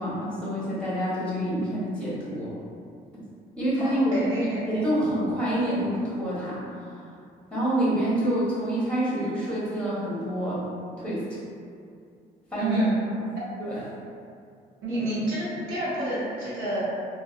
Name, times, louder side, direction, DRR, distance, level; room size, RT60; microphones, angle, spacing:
voice 1, 0.0-2.5 3.6-4.2 4.7-7.1 7.5-10.6 11.0-11.4 12.5-12.8 13.6-13.8, right 1 dB, 5° left, -8 dB, 1.1 m, -27 dB
voice 2, 3.8-4.8 12.6-12.9 14.8-16.8, right 1 dB, 80° right, -8 dB, 0.8 m, -28 dB
2.5 x 2.1 x 2.4 m, 2.3 s
supercardioid pair, 60°, 20 cm